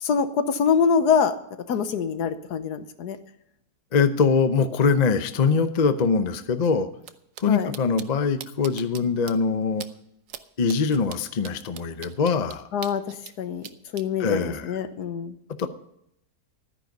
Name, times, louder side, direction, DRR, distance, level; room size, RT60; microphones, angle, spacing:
voice 1, 0.0-1.3 1.7-3.2 7.5-7.7 12.7-13.0 13.4-13.7 13.9-15.3, left 6 dB, 75° left, 10 dB, 1.5 m, -24 dB
voice 2, 3.9-6.9 7.4-9.8 10.6-12.7 14.2-14.8 15.6-15.7, left 5 dB, 40° left, 10 dB, 0.6 m, -23 dB
sound 1, 7.0-7.1 7.4-7.5 7.7-8.1 8.4-9.0 9.3-9.4 9.8-9.9 10.3-10.4 10.7-13.3 13.6-14.0, right 9 dB, 60° right, 1.0 m, -40 dB
13.0 x 9.9 x 5.3 m, 0.76 s
omnidirectional pair, 1.8 m